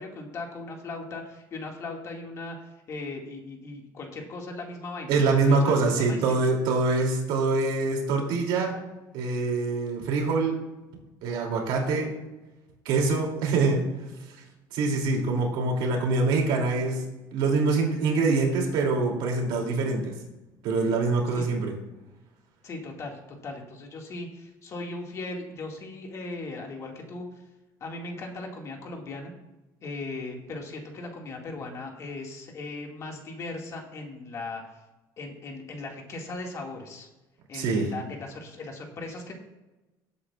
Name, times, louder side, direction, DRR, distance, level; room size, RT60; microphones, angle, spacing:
voice 1, 0.0-6.4 21.3-21.4 22.6-27.3 27.8-29.3 29.8-34.6 35.2-37.1 37.5-39.3, left 2 dB, 35° left, 1 dB, 2.1 m, -38 dB
voice 2, 5.1-8.8 9.1-10.5 11.2-12.1 12.8-14.1 14.7-17.0 17.3-20.1 20.6-21.7 37.5-37.9, right 3 dB, 70° right, 0 dB, 2.9 m, -24 dB
19.0 x 8.3 x 2.5 m, 1.1 s
cardioid pair, 140°, 8 cm